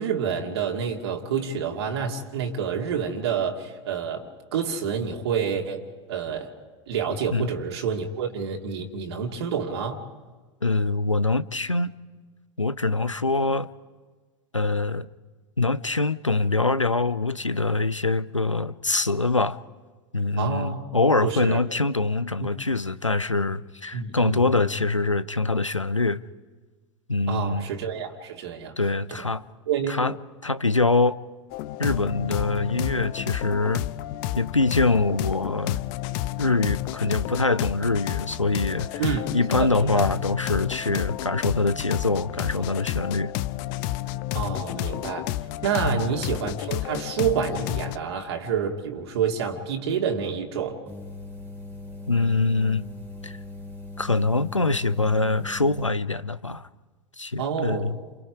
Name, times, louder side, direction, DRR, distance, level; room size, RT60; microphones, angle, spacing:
voice 1, 0.0-5.8 6.1-6.5 6.9-10.0 20.4-20.8 21.2-21.6 23.9-24.7 27.3-28.8 29.7-30.0 39.0-40.0 44.3-45.3 45.6-50.8 57.4-58.0, right 6 dB, 60° right, 1 dB, 2.4 m, -28 dB
voice 2, 10.6-11.9 12.6-13.7 14.5-15.1 15.6-19.6 20.1-26.2 27.1-27.7 28.8-29.4 29.9-30.2 30.4-31.2 31.8-33.9 34.4-35.8 36.4-39.0 39.3-43.3 45.8-46.1 52.1-52.9 53.2-53.4 54.0-56.7 57.2-58.0, left 3 dB, 90° left, 18 dB, 0.6 m, -24 dB
sound 1, 31.5-48.0, left 15 dB, 45° left, 0.7 m, -31 dB
sound 2, 50.9-55.9, left 2 dB, 10° left, 3.9 m, -40 dB
29.5 x 28.5 x 4.9 m, 1.4 s
figure-of-eight pair, 85°, 16 cm